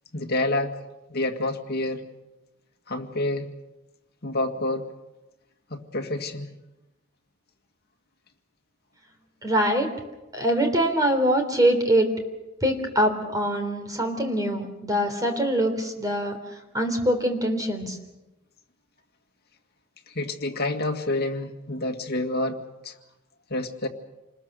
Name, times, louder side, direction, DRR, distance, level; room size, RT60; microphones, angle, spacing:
voice 1, 0.1-0.8 1.1-2.0 2.9-3.5 4.2-4.9 5.7-6.5 20.1-22.9 23.5-23.9, left 2 dB, 50° left, 4 dB, 2.0 m, -28 dB
voice 2, 9.4-9.9 10.3-12.1 12.6-16.4 16.7-18.0, right 1 dB, 15° right, 5 dB, 3.5 m, -23 dB
28.0 x 20.5 x 6.8 m, 1.0 s
head